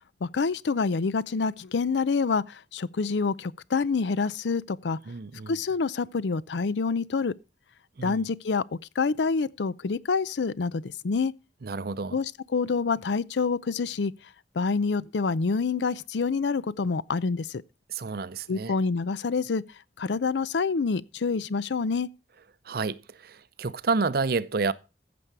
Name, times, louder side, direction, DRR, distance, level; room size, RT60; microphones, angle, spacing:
voice 1, 0.2-5.0 5.5-7.3 8.0-11.3 12.1-14.1 14.6-17.6 18.5-19.6 20.0-22.1, left 4 dB, 80° left, 0.5 m, -27 dB
voice 2, 5.1-5.6 8.0-8.2 11.6-12.2 17.9-18.7 22.7-24.7, right 4 dB, 60° right, 0.6 m, -29 dB
14.5 x 6.9 x 4.7 m
head